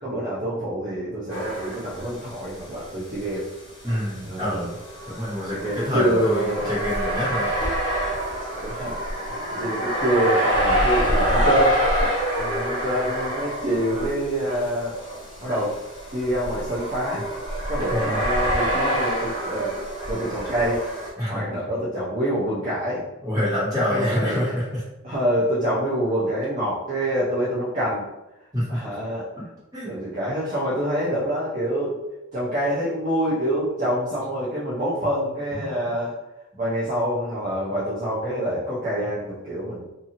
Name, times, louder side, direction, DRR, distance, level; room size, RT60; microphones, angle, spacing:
voice 1, 0.0-3.5 4.2-4.7 5.5-6.8 7.2-7.4 8.6-9.0 9.3-11.8 12.4-14.9 15.4-15.8 16.1-17.2 17.7-19.7 20.1-20.8 21.3-23.0 23.9-24.5 25.0-28.1 28.7-29.3 29.8-32.0 32.3-36.2 36.6-39.9, right 1 dB, 35° right, -9 dB, 0.6 m, -26 dB
sound 1, 1.3-2.4 2.7-2.8 3.8-21.1, equal, 20° left, 0.7 m, -26 dB
voice 2, 3.8-4.7 5.1-7.5 17.9-18.2 21.2-21.4 23.2-24.8 28.5-28.8 29.4-29.5 29.7-29.9 35.6-35.7, left 1 dB, 15° right, -9 dB, 1.2 m, -26 dB
2.6 x 2.6 x 2.8 m, 0.96 s
head